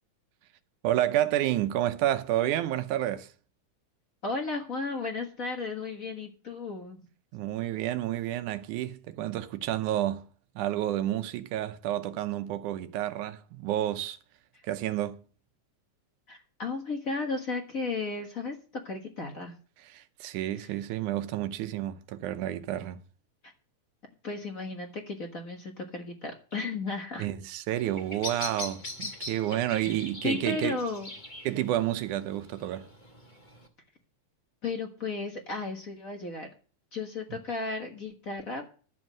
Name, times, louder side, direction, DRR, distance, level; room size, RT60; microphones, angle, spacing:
voice 1, 0.8-3.3 7.3-10.3 10.6-14.2 14.6-15.2 19.9-23.0 27.2-30.8 31.4-32.9 37.3-37.4, right 13 dB, 85° right, 2.2 m, -30 dB
voice 2, 4.2-7.0 16.3-18.5 18.8-19.5 20.5-20.7 24.2-27.3 29.8-30.0 30.2-31.1 34.6-36.5 36.9-38.8, left 3 dB, 45° left, 1.1 m, -34 dB
Bird vocalization bird call bird song, 27.7-33.7, left 2 dB, 25° left, 1.1 m, -42 dB
11.5 x 7.4 x 6.2 m
omnidirectional pair, 3.5 m